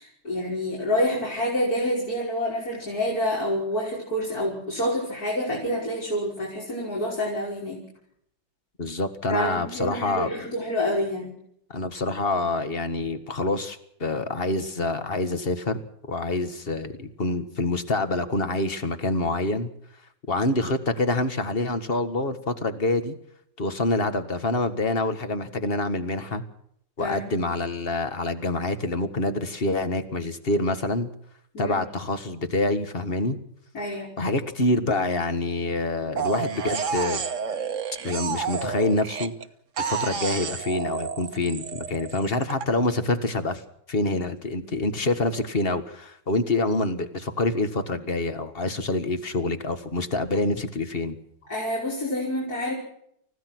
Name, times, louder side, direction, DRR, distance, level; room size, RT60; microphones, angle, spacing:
voice 1, 0.0-7.8 9.3-11.3 27.0-27.2 31.5-31.8 33.7-34.1 51.5-52.7, left 1 dB, 50° left, -3 dB, 6.1 m, -27 dB
voice 2, 8.8-10.3 11.7-15.8 16.1-19.7 20.3-23.2 23.6-26.4 27.0-31.1 31.6-33.4 34.2-37.2 38.0-39.3 39.8-43.6 43.9-51.2, left 2 dB, 30° left, 9 dB, 1.8 m, -26 dB
sound 1, 36.2-39.4 39.8-42.6, right 6 dB, 45° right, 1.4 m, -30 dB
30.0 x 16.0 x 6.2 m, 0.71 s
omnidirectional pair, 2.1 m